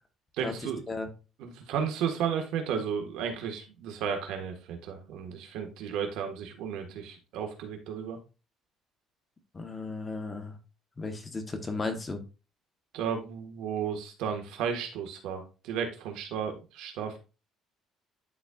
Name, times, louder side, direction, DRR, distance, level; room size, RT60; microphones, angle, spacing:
voice 1, 0.4-0.8 1.4-8.2 12.9-17.2, right 7 dB, 80° right, 1.6 m, -33 dB
voice 2, 9.5-10.6 11.0-12.2, left 3 dB, 20° left, 1.2 m, -35 dB
11.0 x 4.1 x 2.4 m
cardioid pair, 120°, 0 cm